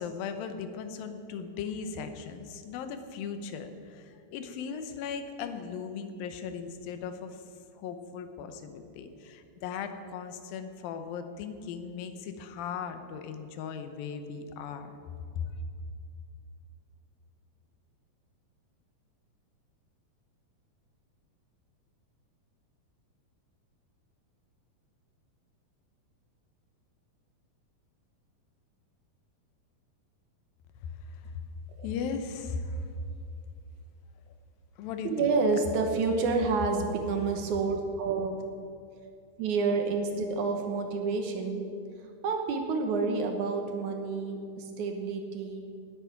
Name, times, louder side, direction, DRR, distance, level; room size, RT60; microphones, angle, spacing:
voice 1, 0.0-7.4 7.8-14.9 15.4-15.5 30.8-31.3 31.8-32.9 34.8-35.3, left 6 dB, 85° left, 8 dB, 2.7 m, -38 dB
voice 2, 35.0-38.4 39.4-41.7 42.2-45.8, right 4 dB, 70° right, 4 dB, 2.2 m, -29 dB
18.0 x 8.4 x 5.8 m, 2.4 s
omnidirectional pair, 4.0 m